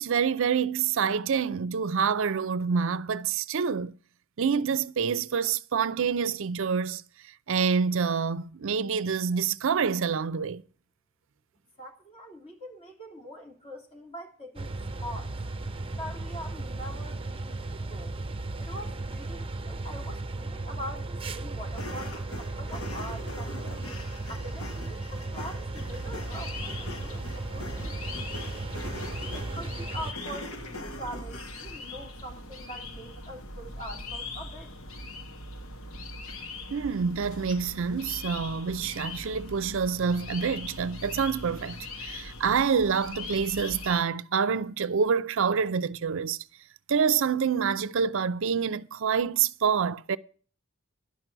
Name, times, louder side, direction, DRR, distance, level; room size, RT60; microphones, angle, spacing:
voice 1, 0.0-3.9 4.4-7.0 7.5-10.6 36.7-46.4 46.9-50.2, right 6 dB, 65° right, 0.5 m, -27 dB
voice 2, 11.8-15.3 15.9-18.1 18.6-23.8 24.3-28.8 29.3-34.7, equal, 30° left, 2.9 m, -43 dB
sound 1, 14.6-30.1, right 2 dB, 25° right, 0.7 m, -36 dB
sound 2, 21.7-31.9, left 2 dB, 85° left, 1.4 m, -43 dB
sound 3, 25.7-44.0, left 2 dB, 70° left, 1.3 m, -41 dB
11.5 x 6.0 x 9.0 m
head